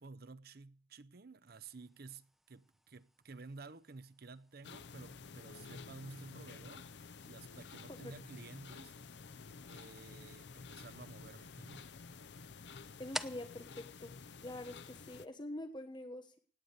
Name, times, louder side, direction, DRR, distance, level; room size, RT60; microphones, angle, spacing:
voice 1, 0.0-8.9 9.7-11.9, right 3 dB, 60° right, 0.8 m, -53 dB
sound 1, 1.5-15.1, equal, ahead, 0.8 m, -54 dB
sound 2, 4.6-15.3, left 4 dB, 75° left, 0.6 m, -51 dB
voice 2, 13.0-14.1 14.4-16.4, left 1 dB, 25° left, 1.3 m, -45 dB
18.0 x 9.5 x 6.6 m
head